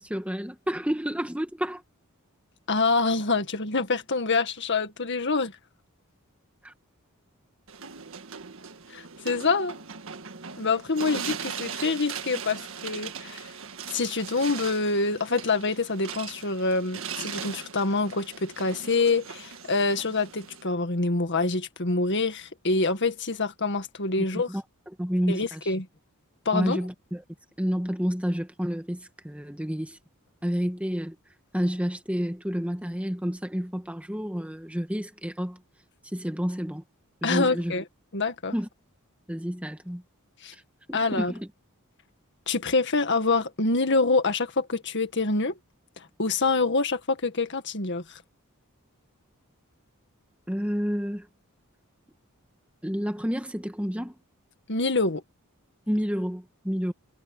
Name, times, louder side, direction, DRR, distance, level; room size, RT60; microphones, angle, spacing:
voice 1, 0.0-1.8 6.6-6.7 24.3-24.6 25.0-25.7 26.5-27.2 27.6-30.0 30.4-31.2 31.5-35.6 36.1-36.8 37.2-37.7 38.5-38.7 39.3-40.0 40.5-40.6 40.9-41.5 50.5-51.3 52.8-54.2 55.9-56.9, equal, 5° right, 1.6 m, -29 dB
voice 2, 2.7-5.5 8.9-9.8 10.6-13.5 13.9-24.5 25.3-25.9 26.5-26.8 37.2-37.8 38.1-38.5 40.4-40.5 40.9-41.3 42.5-45.6 46.0-48.2 54.7-55.2, left 3 dB, 55° left, 1.9 m, -26 dB
sound 1, 7.7-20.6, right 6 dB, 65° right, 1.8 m, -39 dB
head